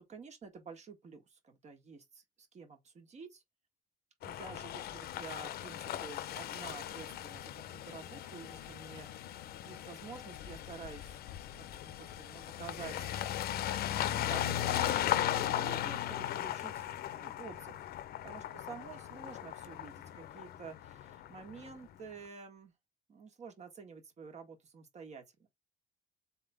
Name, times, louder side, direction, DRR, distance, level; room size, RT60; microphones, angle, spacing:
voice 1, 0.1-3.4 4.2-9.1 9.6-11.3 11.5-13.2 13.8-17.9 18.2-22.7 23.1-25.5, right 5 dB, 40° right, 1.6 m, -50 dB
sound 1, 4.2-21.8, left 12 dB, 65° left, 0.7 m, -37 dB
4.1 x 3.6 x 3.5 m
cardioid pair, 110°, 17 cm